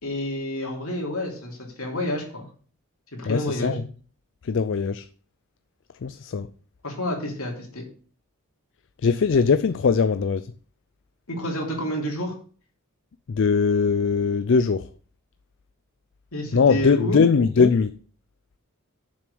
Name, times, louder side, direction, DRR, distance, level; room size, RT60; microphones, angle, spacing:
voice 1, 0.0-2.5 3.1-3.8 6.8-7.8 11.3-12.3 16.3-17.2, left 1 dB, 70° left, 3.1 m, -29 dB
voice 2, 3.2-3.8 4.4-5.1 6.0-6.5 9.0-10.5 13.3-14.9 16.5-17.9, left 5 dB, 55° left, 0.4 m, -21 dB
7.1 x 6.1 x 6.9 m
head